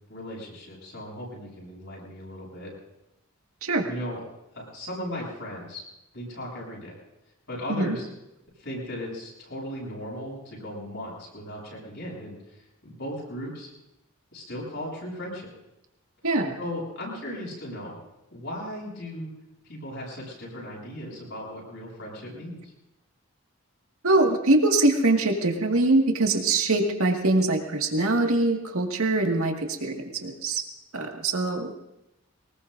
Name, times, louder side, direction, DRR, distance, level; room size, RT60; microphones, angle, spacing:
voice 1, 0.1-2.7 3.8-4.2 4.5-5.8 6.1-6.9 7.5-8.1 8.6-12.4 12.8-13.7 14.3-15.5 16.6-18.0 18.3-19.3 19.6-22.6, equal, 60° left, -5 dB, 7.7 m, -37 dB
voice 2, 16.2-16.6 24.0-30.6 30.9-31.7, right 2 dB, 80° right, 2 dB, 2.0 m, -23 dB
23.0 x 20.0 x 2.7 m, 0.89 s
head